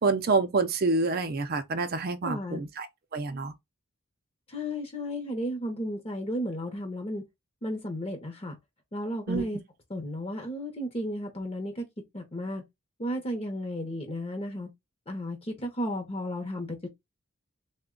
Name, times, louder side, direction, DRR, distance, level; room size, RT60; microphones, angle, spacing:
voice 1, 0.0-2.9 3.1-3.5 9.3-9.4, right 3 dB, 45° right, 0.5 m, -27 dB
voice 2, 2.2-2.6 4.5-7.2 7.6-8.5 8.9-9.6 9.9-11.8 12.1-12.6 13.0-14.7 15.1-16.9, equal, 25° left, 0.7 m, -33 dB
3.4 x 2.2 x 3.6 m
head